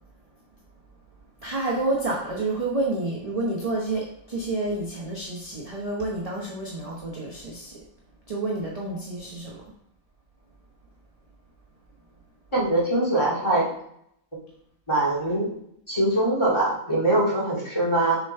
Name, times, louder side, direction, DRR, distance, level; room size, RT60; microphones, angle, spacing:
voice 1, 1.4-7.7 8.3-9.6, right 2 dB, 25° right, -4 dB, 1.0 m, -29 dB
voice 2, 12.5-13.7 14.9-15.5 15.9-18.2, right 1 dB, 20° left, -7 dB, 2.2 m, -22 dB
7.0 x 3.8 x 4.4 m, 0.73 s
omnidirectional pair, 1.6 m